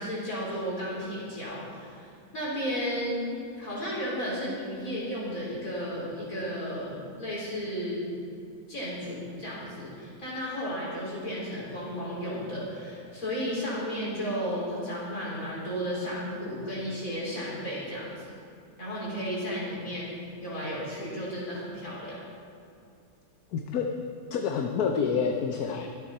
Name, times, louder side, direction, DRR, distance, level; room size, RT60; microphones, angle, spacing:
voice 1, 0.0-8.1 8.7-18.2 18.8-20.1 20.4-22.2, equal, 65° left, -6 dB, 4.6 m, -33 dB
voice 2, 23.5-23.9 24.3-25.9, left 6 dB, 80° left, 3 dB, 1.3 m, -28 dB
23.5 x 8.5 x 4.3 m, 2.6 s
omnidirectional pair, 1.6 m